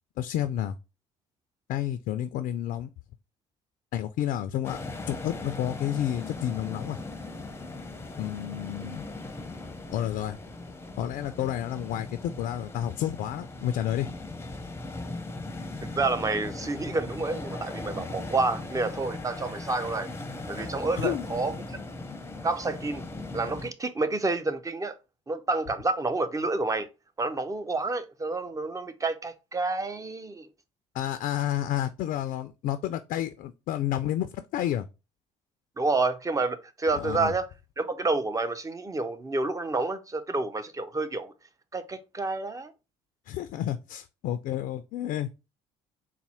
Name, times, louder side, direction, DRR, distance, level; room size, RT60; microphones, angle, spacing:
voice 1, 0.2-0.8 1.7-2.9 3.9-4.8 5.1-7.0 8.2-9.0 9.9-10.4 11.0-14.1 21.0-21.3 30.9-34.9 36.9-37.3 43.3-45.3, left 11 dB, 60° left, 0.4 m, -30 dB
sound 1, 4.6-23.7, left 2 dB, 15° left, 0.7 m, -38 dB
voice 2, 15.8-20.1 20.5-21.8 22.4-23.1 23.3-24.9 25.3-26.9 27.2-30.5 35.8-37.5 37.8-41.3 41.7-42.7, right 3 dB, 20° right, 0.7 m, -29 dB
4.1 x 2.1 x 4.2 m
hypercardioid pair, 60°, 16 cm